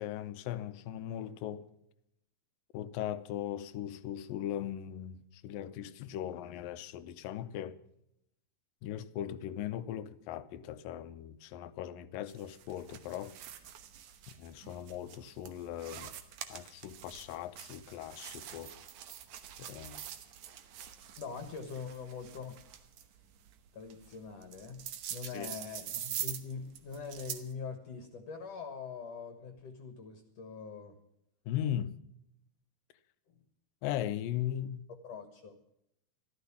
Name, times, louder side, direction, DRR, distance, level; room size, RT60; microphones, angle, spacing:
voice 1, 0.0-1.7 2.7-7.8 8.8-13.3 14.4-16.1 16.5-18.7 19.6-20.0 25.3-25.5 31.5-32.0 33.8-34.9, left 11 dB, 90° left, 2.5 m, -38 dB
sound 1, 12.3-27.5, right 10 dB, 70° right, 2.3 m, -45 dB
voice 2, 21.2-22.6 23.7-24.8 25.1-31.0 35.0-35.5, left 5 dB, 55° left, 2.1 m, -43 dB
13.5 x 13.0 x 7.1 m
omnidirectional pair, 3.9 m